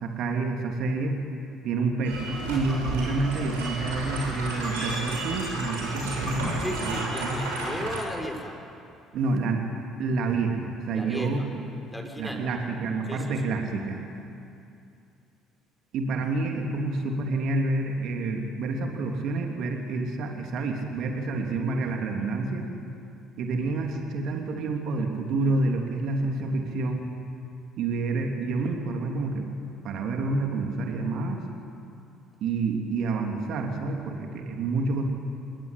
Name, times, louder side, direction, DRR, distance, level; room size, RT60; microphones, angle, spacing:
voice 1, 0.0-1.2 1.6-6.5 6.8-7.4 9.1-9.6 10.0-11.4 12.2-14.0 15.9-22.7 23.4-27.0 27.8-29.5 29.8-31.4 32.4-35.0, right 3 dB, 55° right, 2 dB, 3.2 m, -28 dB
sound 1, 2.0-8.0, right 2 dB, 75° right, 7.6 m, -32 dB
voice 2, 6.6-8.6 10.9-11.3 11.9-12.5 13.1-13.3, equal, 5° left, 2 dB, 6.0 m, -35 dB
28.0 x 21.0 x 8.9 m, 2.6 s
figure-of-eight pair, 55°, 0 cm